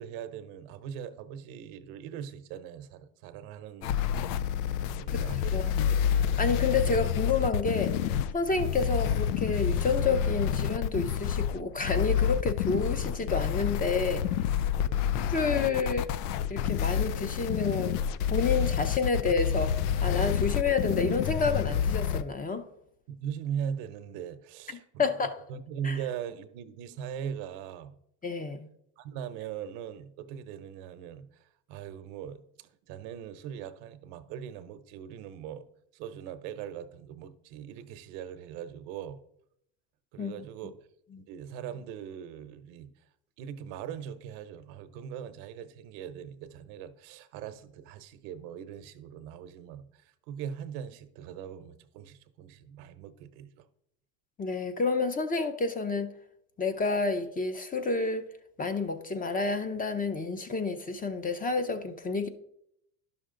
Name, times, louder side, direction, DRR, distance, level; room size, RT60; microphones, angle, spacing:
voice 1, 0.0-4.0 4.9-6.1 14.9-15.2 23.1-25.1 25.5-28.0 29.0-35.7 35.9-39.2 40.1-40.9 41.3-42.9 43.4-53.7, right 8 dB, 75° right, 0.9 m, -40 dB
sound 1, 3.8-22.2, left 9 dB, 85° left, 0.6 m, -28 dB
voice 2, 5.5-5.8 6.4-14.2 15.3-16.1 16.5-18.0 18.3-22.7 25.0-25.3 25.8-26.0 28.2-28.7 40.2-40.4 41.1-41.2 54.4-56.1 56.6-58.3 58.6-62.3, left 4 dB, 20° left, 0.7 m, -29 dB
11.0 x 6.0 x 3.8 m
supercardioid pair, 120°, 45 cm